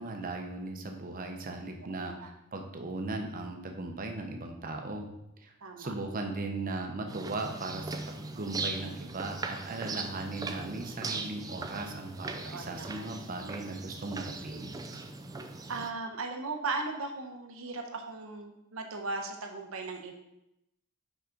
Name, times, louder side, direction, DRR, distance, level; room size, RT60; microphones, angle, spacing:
voice 1, 0.0-5.1 5.4-14.7, right 2 dB, 40° right, 3 dB, 0.8 m, -38 dB
voice 2, 2.0-2.3 5.6-5.9 12.4-13.2 15.7-20.1, right 3 dB, 75° right, 4 dB, 0.9 m, -37 dB
sound 1, 7.1-15.9, right 3 dB, 20° right, 0.4 m, -39 dB
5.6 x 5.0 x 3.8 m, 0.85 s
head